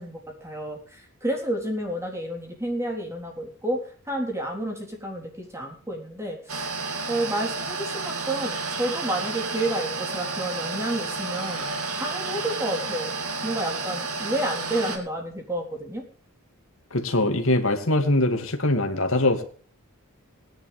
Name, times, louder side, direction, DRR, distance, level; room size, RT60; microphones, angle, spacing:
voice 1, 0.0-6.7 7.1-11.7 11.9-13.1 13.4-16.0, right 1 dB, 10° right, 1 dB, 3.7 m, -30 dB
sound 1, 6.5-15.0, right 3 dB, 85° right, 2.5 m, -31 dB
voice 2, 16.9-19.4, left 2 dB, 65° left, 6 dB, 2.3 m, -22 dB
19.5 x 10.5 x 3.4 m, 0.44 s
head